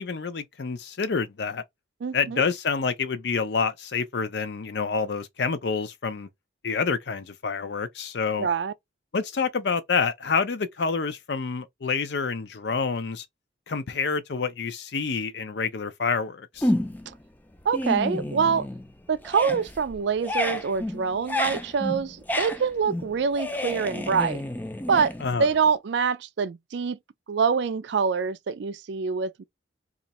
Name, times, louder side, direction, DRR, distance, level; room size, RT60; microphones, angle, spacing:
voice 1, 0.0-1.6 2.1-6.3 6.6-8.5 9.1-13.3 13.7-16.7 25.2-25.5, left 5 dB, 60° left, 0.5 m, -28 dB
voice 2, 2.0-2.4 8.4-8.7 17.7-18.7 19.1-24.4 24.9-25.1 25.4-27.0 27.3-29.4, right 6 dB, 65° right, 0.4 m, -25 dB
sound 1, 16.6-17.2 17.5-18.9 19.2-25.7, left 1 dB, 10° left, 0.3 m, -30 dB
2.8 x 2.4 x 4.1 m
head